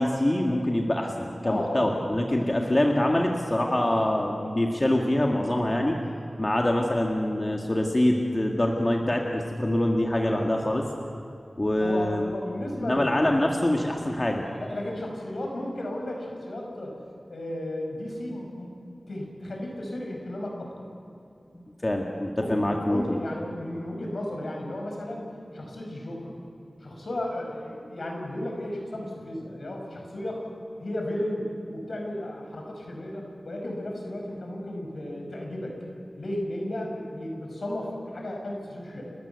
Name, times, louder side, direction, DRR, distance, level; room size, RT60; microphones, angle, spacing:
voice 1, 0.0-6.0 6.4-10.8 11.6-12.3 12.8-14.4 21.5-23.2, left 1 dB, 25° left, 1 dB, 1.8 m, -25 dB
voice 2, 1.4-2.1 6.3-6.5 10.3-10.9 11.8-13.2 14.6-16.9 17.3-18.7 19.1-20.9 22.4-25.2 25.5-26.3 26.8-30.4 30.8-35.8 36.2-39.0, left 1 dB, 70° left, 1 dB, 5.4 m, -34 dB
30.0 x 13.5 x 8.2 m, 2.7 s
wide cardioid pair, 85°, 0 cm